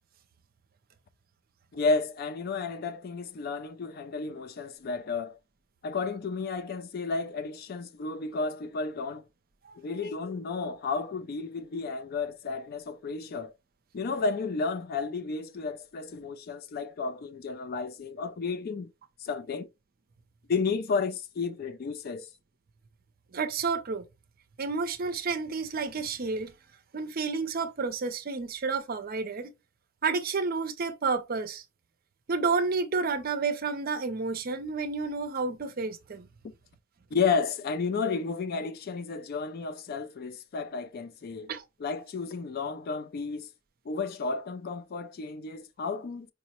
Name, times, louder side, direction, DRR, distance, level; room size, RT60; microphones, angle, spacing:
voice 1, 1.7-5.4 5.8-9.2 9.8-13.5 13.9-18.9 19.2-19.7 20.5-22.3 37.1-41.5 41.8-43.5 43.9-46.3, left 4 dB, 50° left, 0.4 m, -32 dB
voice 2, 23.3-24.0 24.6-26.5 26.9-29.5 30.0-31.6 32.3-36.3 41.5-41.6, right 4 dB, 45° right, 0.5 m, -30 dB
4.7 x 2.0 x 2.9 m
head